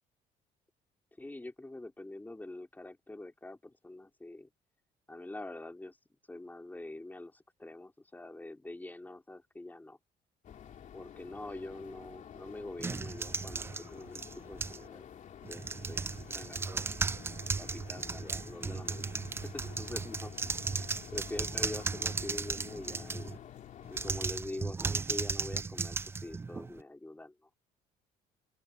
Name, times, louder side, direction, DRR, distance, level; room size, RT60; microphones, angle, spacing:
voice 1, 1.2-4.5 5.1-6.0 6.3-10.0 10.9-15.0 15.5-16.0 16.3-16.8 17.6-20.3 20.7-23.4 23.9-27.6, left 2 dB, 10° left, 3.5 m, -45 dB
sound 1, 10.4-24.2, left 9 dB, 50° left, 3.2 m, -50 dB
sound 2, 12.8-14.9 15.4-23.4 23.9-26.8, right 4 dB, 15° right, 0.3 m, -36 dB
Water tap faucet / Sink (filling or washing), 19.2-24.7, left 18 dB, 85° left, 6.9 m, -55 dB
open air
cardioid pair, 105°, 16 cm